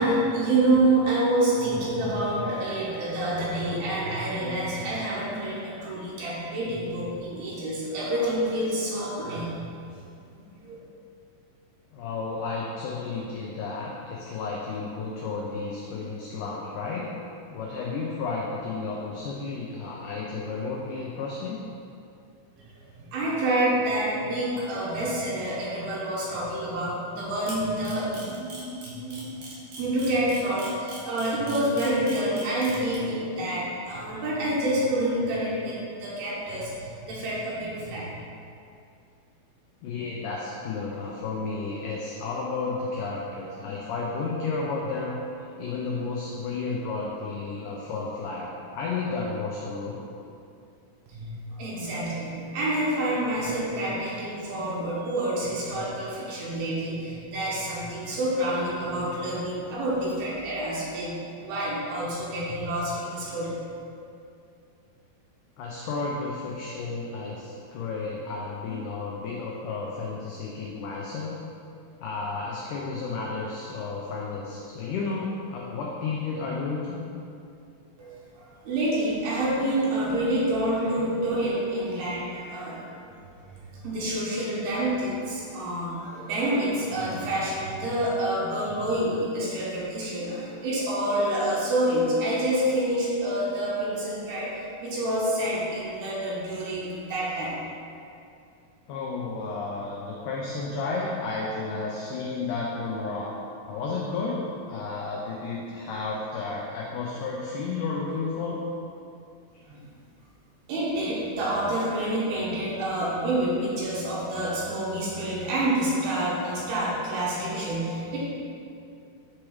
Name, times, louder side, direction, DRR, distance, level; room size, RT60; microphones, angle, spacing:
voice 1, 0.0-9.5 10.3-10.8 23.0-29.4 29.8-38.1 51.1-63.5 78.0-82.8 83.7-97.5 109.7-109.8 110.7-118.3, right 1 dB, 80° right, -6 dB, 3.0 m, -28 dB
voice 2, 11.9-17.2 17.5-21.6 39.8-45.2 45.6-50.0 65.6-71.4 72.0-77.0 98.9-103.4 103.7-108.6, left 4 dB, 85° left, -3 dB, 1.8 m, -32 dB
Camera, 27.5-32.9, right 3 dB, 60° right, 1.6 m, -41 dB
7.3 x 3.1 x 4.8 m, 2.6 s
omnidirectional pair, 4.4 m